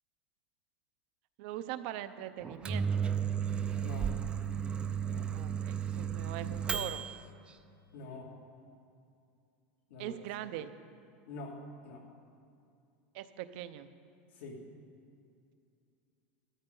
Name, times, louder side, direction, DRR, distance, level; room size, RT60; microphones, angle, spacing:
voice 1, 1.4-3.0 5.3-7.0 10.0-10.7 13.1-13.9, right 12 dB, 60° right, 10 dB, 0.6 m, -41 dB
Microwave oven, 2.4-7.2, right 7 dB, 15° right, 0.4 m, -34 dB
voice 2, 3.8-4.1 5.1-5.3 7.9-8.3 9.9-10.2 11.3-11.6 11.8-12.0 14.3-14.6, left 3 dB, 80° left, -2 dB, 2.7 m, -45 dB
14.5 x 13.5 x 3.9 m, 2.5 s
supercardioid pair, 155°, 6 cm